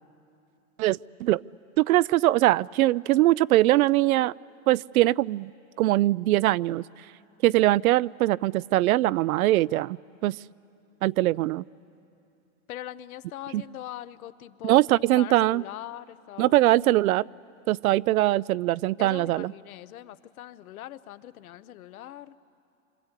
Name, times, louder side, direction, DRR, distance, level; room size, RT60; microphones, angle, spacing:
voice 1, 0.8-1.4 1.8-4.3 4.7-5.5 5.8-6.8 7.4-10.0 10.2-10.4 11.0-11.6 13.5-13.6 14.6-15.6 16.4-17.3 17.7-19.5, right 16 dB, 85° right, 22 dB, 0.5 m, -22 dB
voice 2, 12.7-16.7 19.0-22.4, left 13 dB, 85° left, 14 dB, 1.0 m, -41 dB
26.5 x 25.5 x 8.2 m, 2.6 s
supercardioid pair, 130°, 42 cm